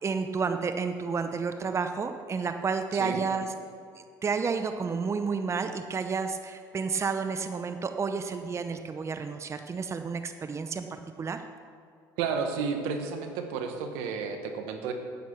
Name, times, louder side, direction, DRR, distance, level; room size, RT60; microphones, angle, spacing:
voice 1, 0.0-3.5 4.2-10.9 11.2-11.4, right 5 dB, 30° right, 8 dB, 0.7 m, -30 dB
voice 2, 12.2-14.9, right 5 dB, 75° right, 6 dB, 1.2 m, -32 dB
9.4 x 8.3 x 5.9 m, 2.3 s
hypercardioid pair, 75°, 10 cm